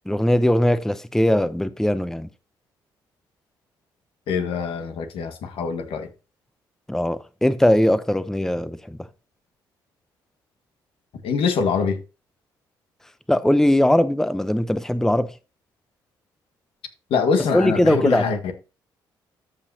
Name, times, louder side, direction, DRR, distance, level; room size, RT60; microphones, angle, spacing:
voice 1, 0.1-2.3 6.9-9.0 13.3-15.3 17.4-18.4, left 1 dB, 5° left, 0.7 m, -20 dB
voice 2, 4.3-6.1 11.2-12.0 17.1-18.5, left 5 dB, 70° left, 1.7 m, -23 dB
13.5 x 5.6 x 2.8 m
supercardioid pair, 55°, 10 cm